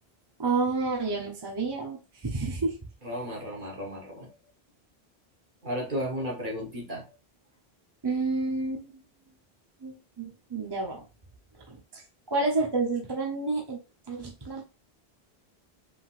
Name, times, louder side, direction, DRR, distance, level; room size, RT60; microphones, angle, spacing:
voice 1, 0.4-2.8 8.0-8.9 9.8-11.0 11.7-12.0 12.3-13.8 14.1-14.6, right 3 dB, 25° right, -1 dB, 0.9 m, -29 dB
voice 2, 3.0-4.3 5.6-7.1, equal, 50° right, -1 dB, 1.6 m, -34 dB
5.1 x 3.8 x 2.6 m, 0.30 s
omnidirectional pair, 1.1 m